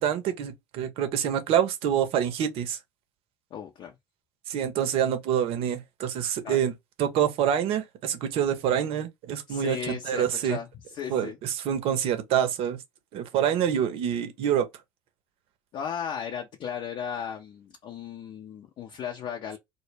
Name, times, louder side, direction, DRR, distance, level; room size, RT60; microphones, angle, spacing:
voice 1, 0.0-2.8 4.5-6.7 7.0-10.6 11.1-12.8 13.1-14.7, right 9 dB, 55° right, 0.6 m, -26 dB
voice 2, 3.5-3.9 6.4-6.6 9.5-10.7 10.9-11.4 15.7-19.6, left 8 dB, 50° left, 0.5 m, -35 dB
2.1 x 2.0 x 3.1 m
hypercardioid pair, 70°, 11 cm